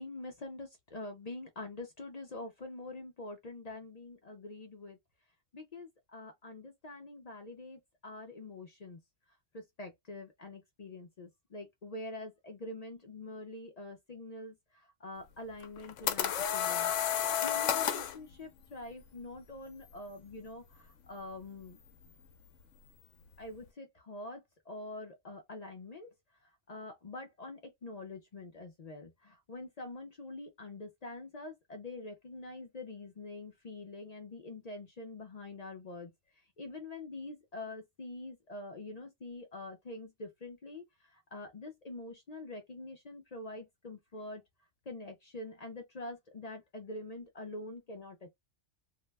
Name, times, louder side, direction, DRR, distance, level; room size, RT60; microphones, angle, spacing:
voice 1, 0.0-5.0 5.5-9.0 9.5-16.9 17.3-21.8 23.4-26.1 26.4-36.1 36.6-44.4 44.9-48.3, left 2 dB, 45° left, 0.5 m, -45 dB
sound 1, 15.6-18.2, left 9 dB, 85° left, 0.9 m, -31 dB
2.7 x 2.1 x 3.3 m
omnidirectional pair, 1.2 m